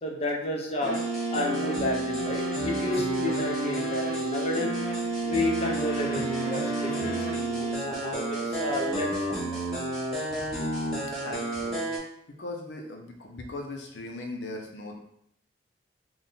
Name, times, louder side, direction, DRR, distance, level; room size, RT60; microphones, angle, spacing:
voice 1, 0.0-1.0 1.3-4.7 5.2-9.6, left 1 dB, 35° left, -1 dB, 0.6 m, -31 dB
sound 1, 0.8-12.0, right 2 dB, ahead, 1.1 m, -30 dB
sound 2, 1.8-9.3, right 1 dB, 55° right, 0.6 m, -44 dB
voice 2, 11.2-11.8 12.4-15.0, left 2 dB, 75° left, 2 dB, 0.5 m, -38 dB
3.6 x 2.1 x 3.8 m, 0.73 s
head